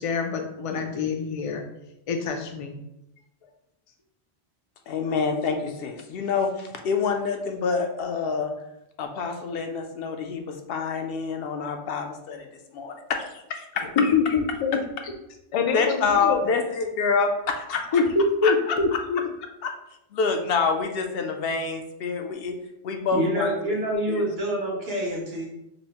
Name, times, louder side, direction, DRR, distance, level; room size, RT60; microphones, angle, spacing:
voice 1, 0.0-1.6 2.1-2.7 14.0-15.1 15.5-16.5 17.9-19.2, left 4 dB, 50° left, 5 dB, 0.4 m, -25 dB
voice 2, 4.9-8.5 9.0-14.1 15.7-18.0 18.4-18.5 18.9-19.0 19.6-19.7 20.1-22.6 22.8-23.8 24.1-24.2, left 5 dB, 70° left, 5 dB, 0.7 m, -27 dB
voice 3, 23.1-25.5, right 1 dB, 70° right, -2 dB, 1.2 m, -27 dB
5.2 x 2.0 x 2.8 m, 0.84 s
omnidirectional pair, 1.1 m